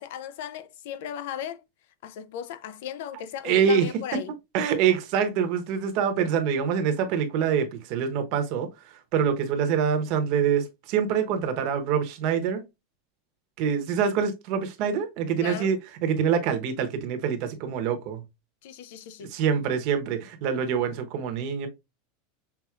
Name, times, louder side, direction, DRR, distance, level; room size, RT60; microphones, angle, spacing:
voice 1, 0.0-1.6 2.0-4.3 15.4-15.7 18.6-19.3, left 9 dB, 55° left, 0.5 m, -36 dB
voice 2, 3.4-3.9 4.5-8.7 9.1-12.6 13.6-18.2 19.3-21.7, right 7 dB, 40° right, 1.0 m, -25 dB
5.9 x 3.8 x 2.4 m
supercardioid pair, 175°, 0 cm